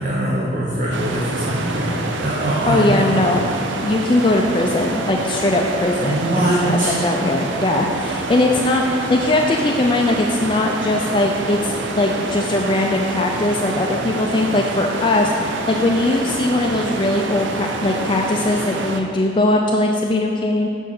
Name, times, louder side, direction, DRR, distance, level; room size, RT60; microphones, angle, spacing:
voice 1, 0.0-3.3 6.0-7.0, right 1 dB, 45° right, -5 dB, 1.0 m, -22 dB
sound 1, 0.9-19.0, right 2 dB, 80° right, 0.7 m, -27 dB
voice 2, 2.7-3.5 3.8-6.2 6.5-20.7, left 2 dB, 25° left, 1 dB, 0.4 m, -20 dB
6.7 x 5.4 x 6.5 m, 2.5 s
head